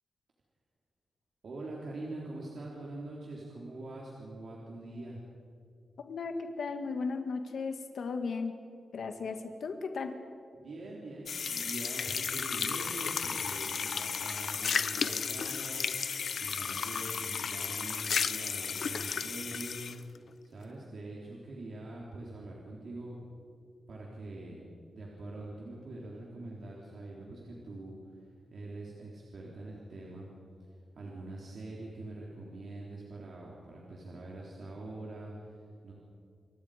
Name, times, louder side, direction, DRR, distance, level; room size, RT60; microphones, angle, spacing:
voice 1, 1.4-5.2 10.6-16.1 16.4-20.1 20.4-23.2 23.9-24.6 24.9-30.3 31.0-35.9, right 2 dB, 65° right, -4 dB, 3.8 m, -44 dB
voice 2, 6.1-8.5 8.9-10.1, left 4 dB, 80° left, 5 dB, 1.8 m, -36 dB
sound 1, 11.3-20.0, left 6 dB, 60° left, 0.8 m, -33 dB
28.5 x 23.5 x 5.1 m, 2.4 s
wide cardioid pair, 165°, 0 cm